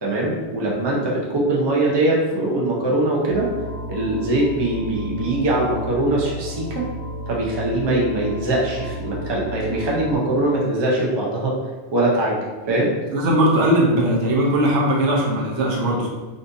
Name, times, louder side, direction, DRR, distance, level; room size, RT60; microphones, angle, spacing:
voice 1, 0.0-3.5 3.9-6.8 7.3-11.5 11.9-12.4 12.7-12.9, right 1 dB, 30° right, -4 dB, 0.5 m, -22 dB
sound 1, 3.3-10.2, equal, 45° left, 1.1 m, -32 dB
voice 2, 13.1-16.1, right 1 dB, 75° right, -3 dB, 1.0 m, -19 dB
4.1 x 2.5 x 2.6 m, 1.2 s
omnidirectional pair, 1.2 m